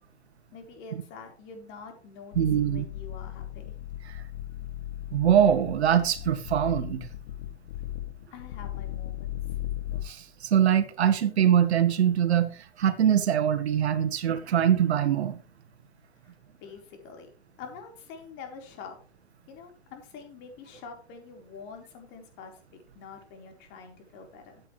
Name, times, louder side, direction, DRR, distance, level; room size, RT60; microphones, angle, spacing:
voice 1, 0.5-3.7 8.3-9.4 16.2-16.3 16.6-17.3 17.6-19.0 19.5-24.6, left 5 dB, 35° left, 4.4 m, -46 dB
sound 1, 2.3-10.1, left 12 dB, 60° left, 2.3 m, -37 dB
voice 2, 2.3-2.8 5.1-7.1 10.0-15.4, right 9 dB, 70° right, 1.6 m, -23 dB
14.0 x 8.3 x 3.3 m
hypercardioid pair, 135°, 34 cm